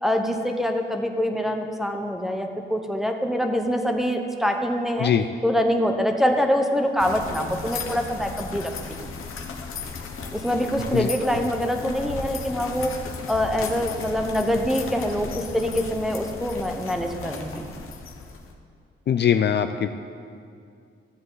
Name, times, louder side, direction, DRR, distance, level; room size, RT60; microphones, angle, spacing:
voice 1, 0.0-5.1 5.4-9.1 10.3-12.9 13.3-17.7, equal, ahead, 4 dB, 0.9 m, -25 dB
sound 1, 7.0-18.5, left 4 dB, 80° left, 0.9 m, -35 dB
voice 2, 19.1-19.9, left 8 dB, 55° left, 8 dB, 0.4 m, -21 dB
13.5 x 7.8 x 4.0 m, 2.3 s
cardioid pair, 90°, 21 cm